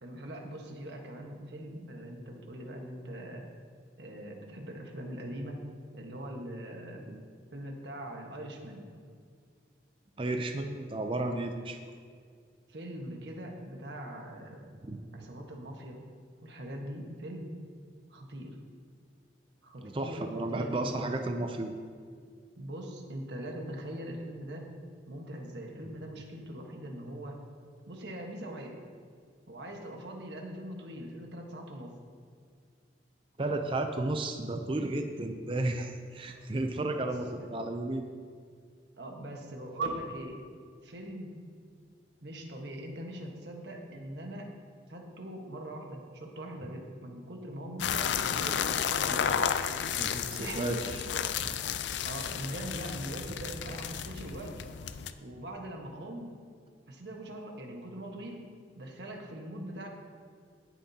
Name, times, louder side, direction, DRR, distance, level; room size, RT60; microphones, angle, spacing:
voice 1, 0.0-3.4 4.0-5.6 5.9-7.1 7.5-8.9 12.7-14.6 15.1-16.0 16.4-17.5 18.1-18.6 19.6-21.1 22.6-24.7 25.1-27.4 27.9-28.8 29.5-32.0 36.3-36.4 36.8-37.1 37.4-37.5 39.0-40.5 40.8-41.4 42.2-44.5 44.9-49.4 50.0-50.9 51.4-51.5 52.0-54.6 55.2-56.3 56.9-58.5 58.8-59.9, right 1 dB, 70° right, 1 dB, 1.4 m, -41 dB
voice 2, 10.2-11.8 14.8-15.0 19.8-21.7 33.4-38.0 50.0-50.1 50.4-51.0, right 2 dB, 30° right, 5 dB, 0.5 m, -33 dB
sound 1, 47.8-55.1, left 8 dB, 80° left, 0.4 m, -32 dB
17.5 x 7.3 x 2.9 m, 2.1 s
head